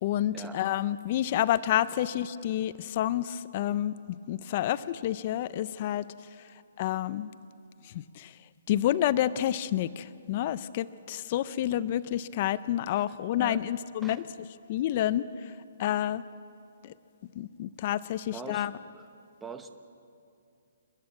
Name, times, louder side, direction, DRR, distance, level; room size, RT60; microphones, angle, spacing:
voice 1, 0.0-6.0 6.8-7.3 7.9-8.3 8.7-14.2 14.7-15.2 15.8-16.2 16.8-16.9 17.4-18.7, left 12 dB, 35° left, 15 dB, 0.4 m, -29 dB
voice 2, 18.3-18.7 19.0-19.1 19.4-19.7, right 4 dB, 5° right, 7 dB, 0.8 m, -42 dB
28.5 x 10.5 x 8.6 m, 2.5 s
hypercardioid pair, 165°, 0 cm